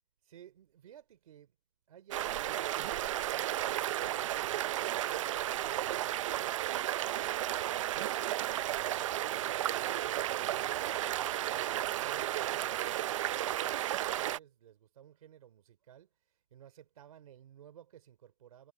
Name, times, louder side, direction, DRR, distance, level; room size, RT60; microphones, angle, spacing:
voice 1, 0.2-1.5 1.9-18.7, right 10 dB, 75° right, 3.2 m, -57 dB
sound 1, 2.1-14.4, right 13 dB, 60° right, 0.6 m, -33 dB
hypercardioid pair, 160°, 19 cm